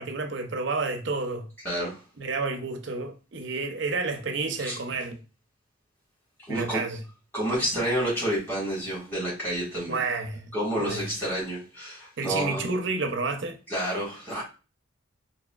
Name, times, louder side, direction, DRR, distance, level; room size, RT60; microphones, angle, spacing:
voice 1, 0.0-1.5 2.2-5.2 6.5-7.0 9.9-10.5 10.8-11.1 12.2-13.6, right 3 dB, 55° right, 0.5 m, -30 dB
voice 2, 1.6-2.0 4.6-4.8 6.5-6.8 7.3-10.0 10.5-12.7 13.7-14.4, right 1 dB, 10° left, 1.7 m, -29 dB
4.8 x 2.7 x 2.3 m
head